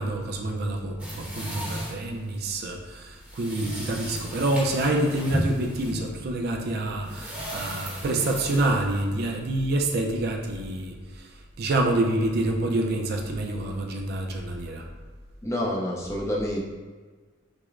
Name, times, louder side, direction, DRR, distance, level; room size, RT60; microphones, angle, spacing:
voice 1, 0.0-14.8, right 1 dB, 55° right, 2 dB, 0.4 m, -27 dB
sound 1, 1.0-9.6, right 1 dB, 5° right, 0.9 m, -35 dB
voice 2, 15.4-16.6, left 1 dB, 15° left, -3 dB, 0.5 m, -28 dB
6.0 x 2.0 x 2.4 m, 1.4 s
head